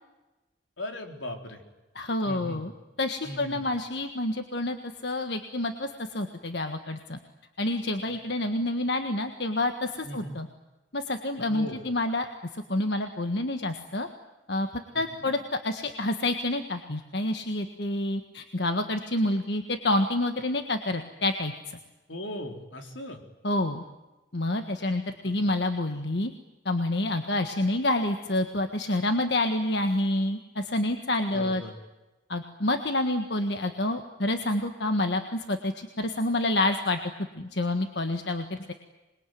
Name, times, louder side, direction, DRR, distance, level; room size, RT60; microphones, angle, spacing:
voice 1, 0.8-1.6 2.2-2.6 3.2-3.7 8.4-8.5 10.0-10.4 11.5-11.8 14.9-15.3 22.1-23.2 25.2-25.4 31.3-31.7, left 1 dB, 80° left, 4 dB, 4.0 m, -38 dB
voice 2, 1.9-2.7 3.0-4.8 5.0-7.2 7.6-10.5 10.9-12.2 12.5-14.1 14.5-14.7 14.9-21.8 23.4-23.8 24.3-26.3 26.6-31.6 32.3-37.0 37.4-38.7, left 1 dB, 60° left, 6 dB, 1.6 m, -28 dB
26.5 x 22.0 x 9.4 m, 1.1 s
head